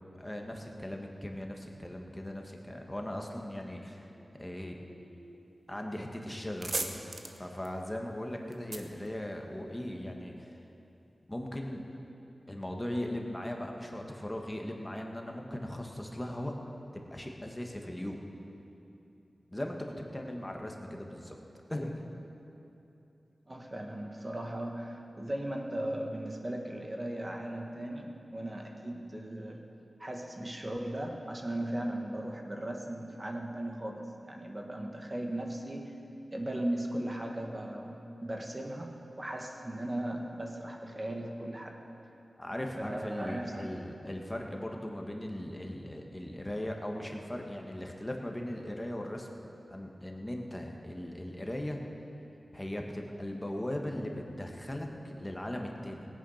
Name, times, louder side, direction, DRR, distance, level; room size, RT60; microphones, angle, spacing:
voice 1, 0.2-4.1 4.4-4.8 5.7-7.0 7.4-10.6 11.3-11.8 12.5-16.5 16.9-18.2 19.5-21.4 21.7-22.0 42.4-49.3 49.7-51.8 52.5-56.1, left 1 dB, 15° left, 1 dB, 1.6 m, -38 dB
voice 2, 4.8-5.4 23.5-29.6 30.0-35.9 36.3-41.8 42.8-43.7, right 1 dB, 35° right, 2 dB, 1.7 m, -37 dB
sound 1, 5.9-6.0 6.3-9.9, right 2 dB, 60° right, 1.0 m, -39 dB
17.5 x 9.2 x 5.8 m, 2.9 s
cardioid pair, 50°, 0 cm